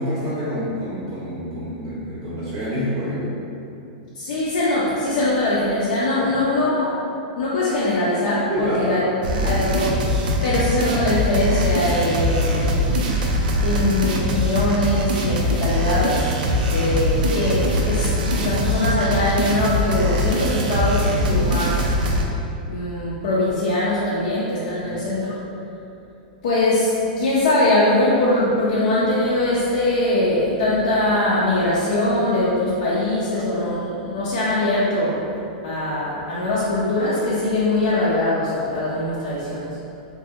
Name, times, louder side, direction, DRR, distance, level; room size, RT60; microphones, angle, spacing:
voice 1, 0.0-3.3 6.1-6.3 8.5-9.5 21.3-21.4 24.8-24.9 33.3-33.7, equal, 40° right, -9 dB, 0.7 m, -28 dB
voice 2, 4.1-6.9 7.4-9.1 9.4-13.1 13.6-21.9 22.7-25.3 26.4-35.4 35.6-39.7, left 1 dB, 60° left, -8 dB, 0.5 m, -22 dB
sound 1, 9.2-22.2, left 1 dB, 80° right, 0.4 m, -22 dB
2.7 x 2.6 x 2.4 m, 2.7 s
supercardioid pair, 160°, 5 cm